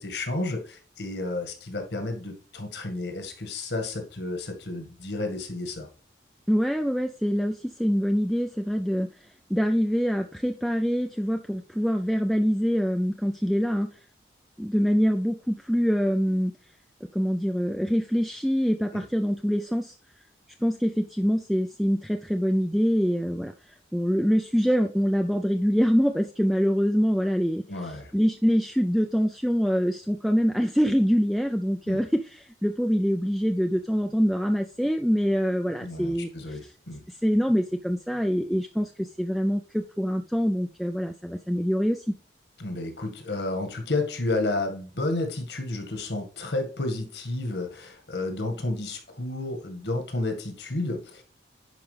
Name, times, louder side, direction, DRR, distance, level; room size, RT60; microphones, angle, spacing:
voice 1, 0.0-5.9 18.9-19.0 27.7-28.1 31.9-32.0 35.8-37.0 42.6-51.2, left 2 dB, 70° left, 5 dB, 1.9 m, -31 dB
voice 2, 6.5-9.1 9.5-14.0 14.6-16.5 17.1-19.9 20.6-36.6 37.1-42.1, equal, ahead, 4 dB, 0.4 m, -25 dB
10.5 x 5.0 x 3.3 m, 0.39 s
head